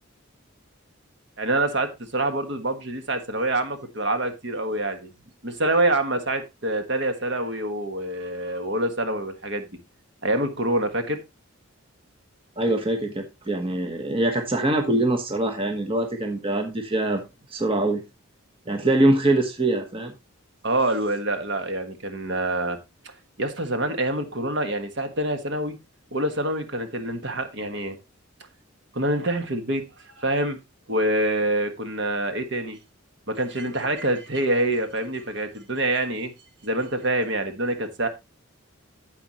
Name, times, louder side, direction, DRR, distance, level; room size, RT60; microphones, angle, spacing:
voice 1, 1.4-5.1 5.4-9.7 10.2-11.2 20.6-22.8 23.4-25.8 26.1-28.0 28.9-29.8 30.2-30.6 30.9-32.8 33.3-36.3 36.6-38.1, right 1 dB, 55° right, 7 dB, 1.5 m, -26 dB
voice 2, 12.6-17.2 17.5-18.0 18.7-20.1, right 1 dB, 25° right, 4 dB, 1.2 m, -23 dB
9.6 x 8.2 x 3.0 m, 0.23 s
head